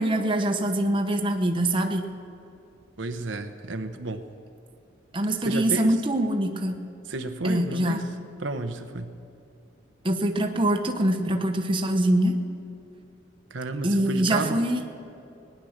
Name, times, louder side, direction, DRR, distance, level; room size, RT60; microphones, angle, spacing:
voice 1, 0.0-2.1 5.1-6.8 7.4-8.0 10.0-12.4 13.8-14.8, right 1 dB, 25° right, 4 dB, 1.0 m, -24 dB
voice 2, 3.0-4.2 5.4-6.0 7.1-8.0 8.4-9.1 13.5-14.6, right 2 dB, 75° right, 7 dB, 1.0 m, -31 dB
19.0 x 10.5 x 6.6 m, 2.7 s
head